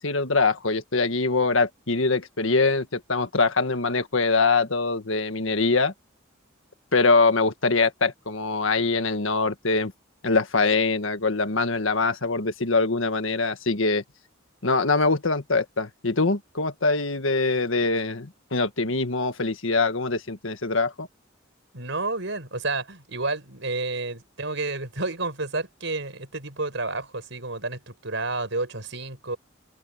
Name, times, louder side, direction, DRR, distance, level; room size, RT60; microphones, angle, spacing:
voice 1, 0.0-5.9 6.9-9.9 10.2-14.0 14.6-21.1, left 3 dB, 75° left, 1.7 m, -23 dB
voice 2, 21.7-29.4, right 3 dB, 65° right, 6.4 m, -30 dB
open air
head